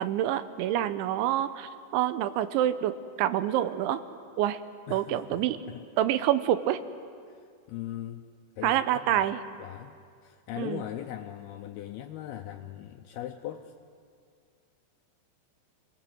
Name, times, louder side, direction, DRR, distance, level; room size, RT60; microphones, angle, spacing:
voice 1, 0.0-4.0 4.4-4.6 4.9-5.6 6.0-6.8 8.6-9.4 10.6-10.8, right 12 dB, 85° right, 12 dB, 3.2 m, -27 dB
voice 2, 4.9-5.8 7.3-8.3 8.6-9.3 9.6-13.7, left 12 dB, 80° left, 5 dB, 2.3 m, -40 dB
28.5 x 19.5 x 7.8 m, 2.2 s
omnidirectional pair, 5.3 m